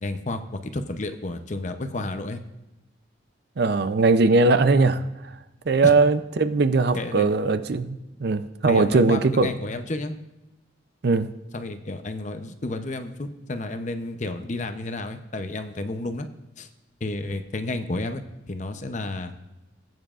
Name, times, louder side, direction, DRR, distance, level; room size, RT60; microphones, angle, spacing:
voice 1, 0.0-2.4 5.8-5.9 6.9-7.3 8.7-10.2 11.5-16.3 16.6-16.7 17.0-19.3, left 2 dB, 40° left, 8 dB, 0.7 m, -31 dB
voice 2, 3.6-5.4 5.7-9.5 11.0-11.3, right 3 dB, 55° right, 12 dB, 0.5 m, -20 dB
19.0 x 9.3 x 2.5 m, 1.0 s
head